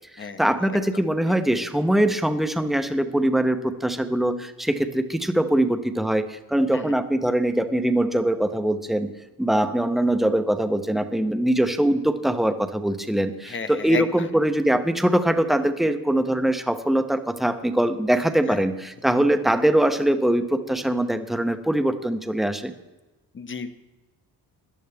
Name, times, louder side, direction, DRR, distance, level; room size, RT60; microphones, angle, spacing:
voice 1, 0.2-9.1 9.4-22.7, right 1 dB, ahead, 8 dB, 0.9 m, -22 dB
voice 2, 13.5-14.0 18.5-18.6 23.3-23.7, left 6 dB, 30° left, 10 dB, 1.0 m, -32 dB
17.5 x 11.5 x 3.4 m, 1.1 s
cardioid pair, 125°, 38 cm